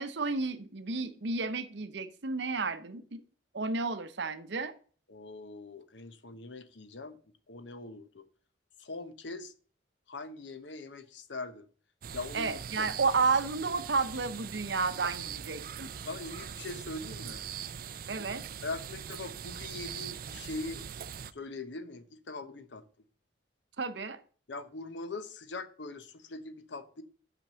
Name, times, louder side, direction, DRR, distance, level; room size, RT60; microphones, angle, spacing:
voice 1, 0.0-3.2 3.5-4.7 12.3-15.9 18.1-18.4 23.8-24.2, right 4 dB, 70° right, 0.8 m, -31 dB
voice 2, 5.1-7.2 7.5-8.2 8.8-9.5 10.1-11.7 12.1-12.5 12.8-12.9 16.0-17.4 18.6-20.8 21.3-22.8 24.5-27.0, left 3 dB, 70° left, 0.8 m, -41 dB
sound 1, 12.0-21.3, right 8 dB, 50° right, 0.4 m, -42 dB
6.0 x 5.9 x 6.9 m
head